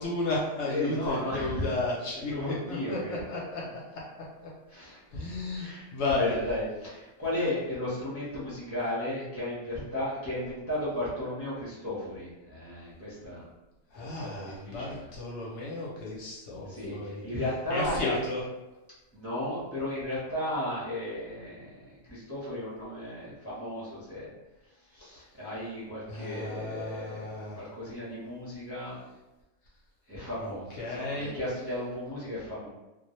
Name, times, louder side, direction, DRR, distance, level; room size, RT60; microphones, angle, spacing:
voice 1, 0.0-3.6 3.9-4.0 5.1-6.3 13.9-17.2 17.7-18.4 26.1-27.6 30.4-30.5 30.8-31.3, left 2 dB, 65° left, -4 dB, 0.8 m, -33 dB
voice 2, 0.6-1.6 2.3-3.2 4.7-5.2 5.5-13.4 13.9-15.1 16.7-18.2 19.1-24.3 24.9-29.0 30.1-32.7, left 1 dB, 15° right, -9 dB, 0.5 m, -34 dB
2.2 x 2.0 x 2.9 m, 1.1 s
omnidirectional pair, 1.4 m